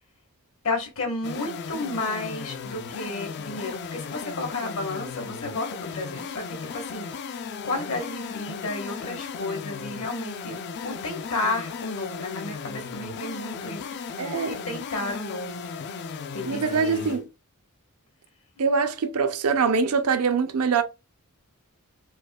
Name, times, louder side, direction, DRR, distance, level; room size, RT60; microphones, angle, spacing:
voice 1, 0.6-14.2 14.5-15.7 16.3-17.2, left 2 dB, 65° left, 1.2 m, -32 dB
sound 1, 1.2-17.2, left 5 dB, 50° left, 0.4 m, -36 dB
voice 2, 14.2-14.6 16.4-17.3 18.6-20.8, right 5 dB, 85° right, 0.5 m, -23 dB
4.5 x 2.3 x 2.3 m
head